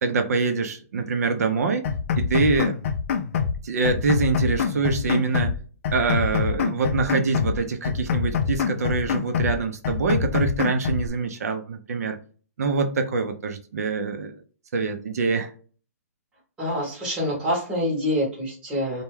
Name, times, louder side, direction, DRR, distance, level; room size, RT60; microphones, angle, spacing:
voice 1, 0.0-1.9 2.2-2.8 3.6-5.5 5.9-12.2 12.6-14.3 14.7-15.5, right 4 dB, 70° right, 0.5 m, -25 dB
sound 1, 1.8-3.6 3.8-5.6 5.8-7.6 7.8-9.6 9.8-11.1, left 6 dB, 50° left, 0.4 m, -25 dB
voice 2, 16.6-19.0, equal, 10° right, 0.9 m, -26 dB
2.2 x 2.2 x 3.1 m
hypercardioid pair, 145°, 9 cm